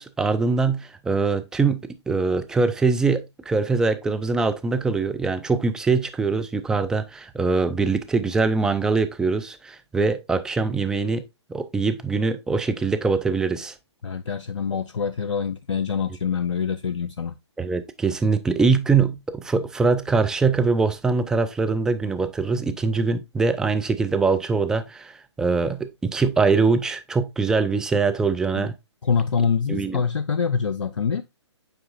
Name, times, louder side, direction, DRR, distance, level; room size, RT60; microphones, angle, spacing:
voice 1, 0.0-11.2 11.5-13.7 17.6-25.1 25.4-28.7 29.7-30.0, right 4 dB, 5° right, 0.4 m, -23 dB
voice 2, 14.0-17.4 28.5-28.7 29.0-31.2, left 6 dB, 90° left, 0.5 m, -25 dB
8.0 x 4.7 x 2.5 m
hypercardioid pair, 135°, 15 cm